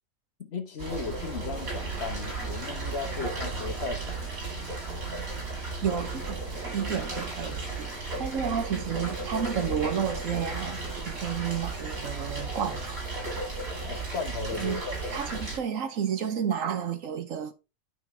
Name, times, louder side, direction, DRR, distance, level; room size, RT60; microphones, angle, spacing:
voice 1, 0.5-4.3 13.8-14.9, left 4 dB, 50° left, 1.5 m, -36 dB
sound 1, 0.8-15.6, right 3 dB, 90° right, 4.5 m, -34 dB
voice 2, 5.8-6.4 6.7-7.9 8.2-10.8 11.0-13.0 14.6-14.8 15.1-17.5, right 8 dB, 70° right, 1.4 m, -31 dB
9.2 x 5.5 x 3.3 m
omnidirectional pair, 1.4 m